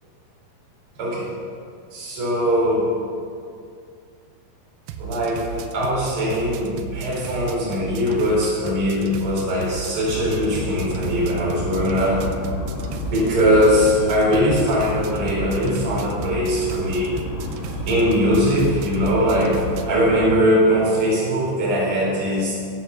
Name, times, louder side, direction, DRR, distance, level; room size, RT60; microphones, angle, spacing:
voice 1, 1.0-1.3 1.9-3.0 5.0-12.3 13.1-17.2 17.9-19.6 19.9-22.5, equal, 30° right, -5 dB, 3.7 m, -21 dB
sound 1, 4.8-19.9, right 8 dB, 85° right, 2.3 m, -34 dB
sound 2, 10.1-20.4, left 3 dB, 85° left, 4.6 m, -31 dB
10.0 x 8.6 x 6.5 m, 2.3 s
omnidirectional pair, 5.3 m